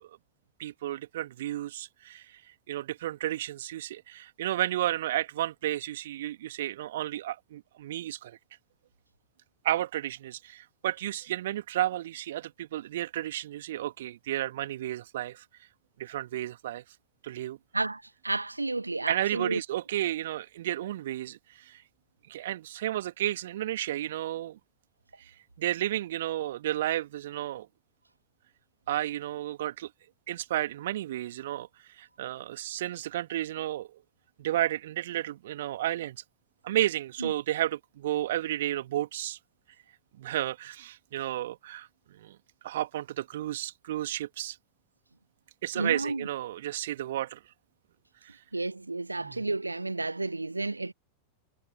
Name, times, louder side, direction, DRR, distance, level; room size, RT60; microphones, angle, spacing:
voice 1, 0.6-2.4 2.7-8.4 9.6-15.4 16.0-16.8 17.2-17.6 19.1-21.8 22.3-24.6 25.2-27.7 28.9-29.9 30.3-31.7 32.0-33.9 34.4-36.2 36.6-39.4 40.2-41.9 42.2-42.4 42.6-44.6 45.6-47.4 49.2-49.4, right 13 dB, 55° right, 2.4 m, -32 dB
voice 2, 17.7-19.6 37.2-37.3 45.7-46.3 48.5-50.9, right 2 dB, 80° right, 1.2 m, -31 dB
figure-of-eight pair, 90°, 0 cm